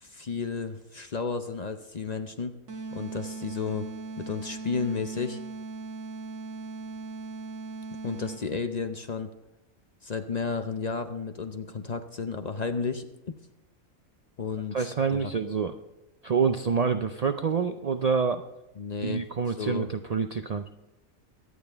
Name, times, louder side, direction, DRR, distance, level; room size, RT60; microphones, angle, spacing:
voice 1, 0.0-2.6 2.9-3.9 4.2-5.4 8.0-9.3 10.0-13.3 14.4-15.3 18.8-19.2 19.6-19.9, left 5 dB, 40° left, 8 dB, 0.6 m, -32 dB
sound 1, 2.7-8.6, right 3 dB, 65° right, 1.7 m, -39 dB
voice 2, 14.7-15.7 16.2-18.4 19.0-20.6, right 6 dB, 85° right, 8 dB, 0.3 m, -27 dB
23.5 x 8.9 x 3.4 m, 0.95 s
omnidirectional pair, 1.4 m